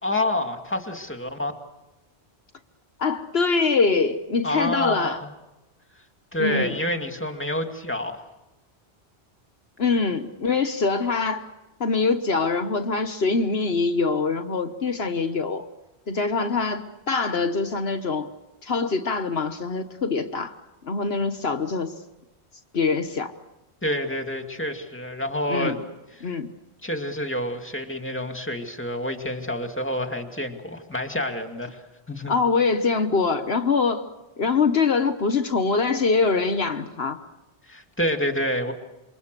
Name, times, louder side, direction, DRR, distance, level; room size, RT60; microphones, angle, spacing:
voice 1, 0.0-1.5 4.4-5.3 6.3-8.3 23.8-25.8 26.8-31.8 32.1-32.3 37.7-38.7, left 1 dB, 10° left, 5 dB, 2.3 m, -28 dB
voice 2, 3.0-5.2 6.4-6.8 9.8-11.5 11.8-15.7 16.1-18.3 18.6-20.5 20.8-21.9 22.7-23.3 25.5-25.7 26.2-26.5 32.3-34.1 34.4-37.2, left 4 dB, 65° left, 8 dB, 1.5 m, -24 dB
28.0 x 24.5 x 6.8 m, 1.0 s
omnidirectional pair, 1.1 m